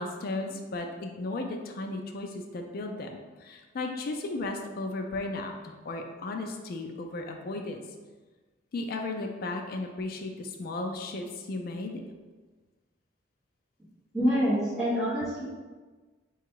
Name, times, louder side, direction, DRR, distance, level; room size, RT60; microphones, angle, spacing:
voice 1, 0.0-7.8 8.7-12.0, left 2 dB, 55° left, 2 dB, 0.4 m, -35 dB
voice 2, 14.1-15.4, equal, ahead, -12 dB, 1.2 m, -26 dB
3.9 x 2.4 x 4.5 m, 1.3 s
head